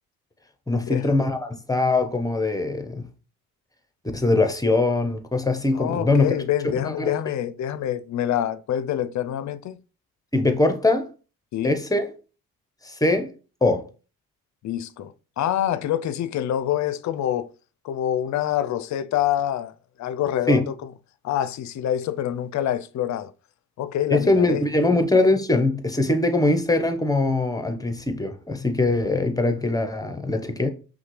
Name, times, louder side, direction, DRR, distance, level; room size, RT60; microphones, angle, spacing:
voice 1, 0.7-3.1 4.1-6.3 6.8-7.2 10.3-11.1 11.6-12.1 12.8-13.3 13.6-13.8 20.5-20.7 24.1-30.7, left 2 dB, 10° left, 0.8 m, -22 dB
voice 2, 5.7-9.8 11.5-11.8 14.6-17.5 17.8-19.7 20.0-20.6 21.2-23.3 23.8-24.6, left 11 dB, 45° left, 0.5 m, -26 dB
5.6 x 2.3 x 3.2 m
hypercardioid pair, 50°, 40 cm